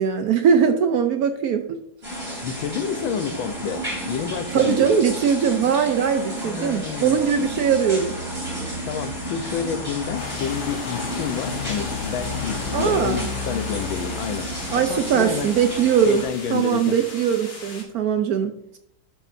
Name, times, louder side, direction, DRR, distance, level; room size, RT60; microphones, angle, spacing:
voice 1, 0.0-1.8 4.5-8.2 12.7-13.3 14.7-16.2 16.5-18.5, right 7 dB, 70° right, 7 dB, 0.9 m, -21 dB
sound 1, 2.0-16.2, right 1 dB, 20° right, 3.5 m, -32 dB
voice 2, 2.4-5.0 6.4-7.2 8.8-14.5 14.8-15.5 16.0-17.0, left 7 dB, 85° left, 9 dB, 1.5 m, -29 dB
Truck, 6.9-16.1, left 6 dB, 70° left, 1.1 m, -35 dB
sound 2, 10.2-17.8, left 2 dB, 50° left, 2.2 m, -39 dB
12.0 x 6.0 x 2.6 m, 0.73 s
omnidirectional pair, 2.1 m